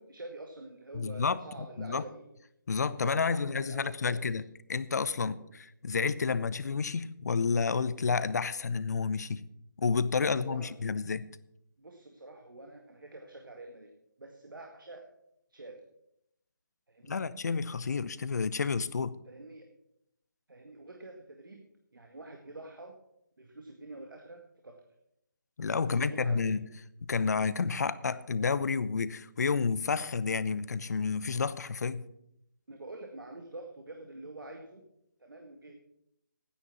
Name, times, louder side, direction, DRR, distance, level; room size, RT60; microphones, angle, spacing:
voice 1, 0.0-2.2 2.9-4.4 5.2-5.4 10.2-10.7 11.8-13.9 14.2-15.1 15.5-15.8 16.9-17.2 19.3-19.7 20.5-21.6 21.9-23.0 23.4-24.8 25.7-26.5 32.7-34.8 35.2-35.7, right 2 dB, 85° right, 3 dB, 2.0 m, -47 dB
voice 2, 0.9-1.4 1.8-2.0 2.7-4.4 4.7-9.4 9.8-11.3 17.1-19.1 25.6-26.6 27.1-32.0, left 5 dB, 55° left, 16 dB, 0.7 m, -30 dB
12.0 x 9.9 x 6.1 m, 0.78 s
figure-of-eight pair, 160°, 11 cm